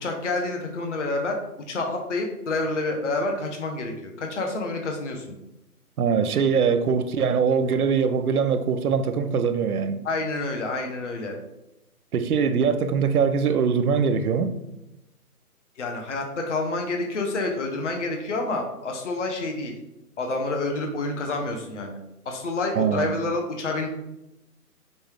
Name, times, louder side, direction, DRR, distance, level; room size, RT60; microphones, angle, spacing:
voice 1, 0.0-1.4 1.7-5.4 10.0-11.4 15.8-19.7 20.2-22.0 22.3-23.9, left 2 dB, 50° left, 0.7 m, -28 dB
voice 2, 6.0-10.0 12.1-14.5 22.8-23.1, right 6 dB, 75° right, 0.5 m, -22 dB
5.2 x 2.3 x 3.1 m
hypercardioid pair, 170°, 46 cm